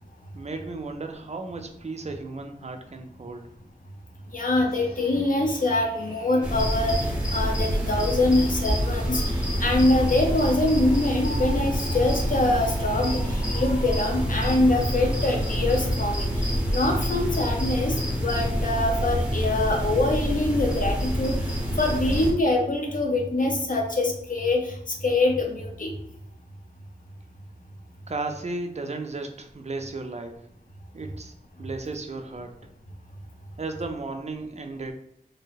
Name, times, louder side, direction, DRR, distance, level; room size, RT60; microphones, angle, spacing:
voice 1, 0.3-3.5 28.1-30.5 30.9-31.3 31.6-32.6 33.6-34.9, right 3 dB, 45° right, 5 dB, 0.4 m, -34 dB
voice 2, 4.3-21.4 21.8-24.8 25.0-25.9, left 2 dB, 55° left, 1 dB, 0.7 m, -24 dB
sound 1, 4.7-16.2, left 1 dB, 75° left, 1.1 m, -44 dB
sound 2, 6.4-22.3, equal, 5° right, 0.8 m, -27 dB
2.7 x 2.1 x 3.9 m, 0.72 s
wide cardioid pair, 70°, 16 cm